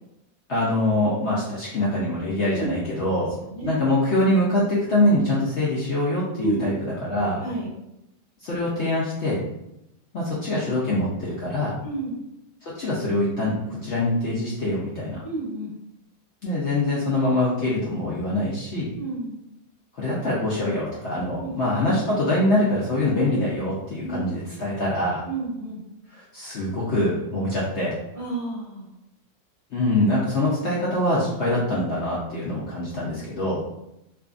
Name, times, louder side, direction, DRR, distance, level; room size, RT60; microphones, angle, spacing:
voice 1, 0.5-3.3 3.7-7.4 8.4-9.4 10.1-11.8 12.6-15.2 16.4-18.9 19.9-25.2 26.2-27.9 29.7-33.6, left 1 dB, 65° left, -7 dB, 0.7 m, -24 dB
voice 2, 7.4-7.7 11.8-12.2 15.2-15.7 18.9-19.4 21.4-21.5 24.0-24.2 25.2-25.8 28.1-28.9, right 2 dB, 40° right, -8 dB, 0.9 m, -30 dB
2.6 x 2.4 x 2.4 m, 0.87 s
omnidirectional pair, 1.6 m